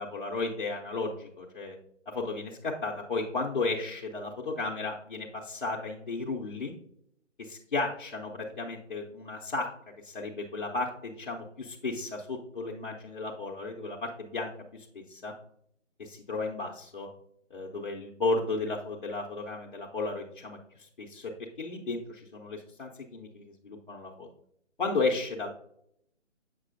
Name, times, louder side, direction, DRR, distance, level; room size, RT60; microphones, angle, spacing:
voice 1, 0.0-1.8 2.1-6.7 7.4-9.7 10.0-15.3 16.0-17.1 17.5-20.6 21.0-24.3 24.8-25.5, left 3 dB, 40° left, -2 dB, 0.7 m, -34 dB
7.4 x 6.0 x 2.5 m, 0.73 s
figure-of-eight pair, 150°, 38 cm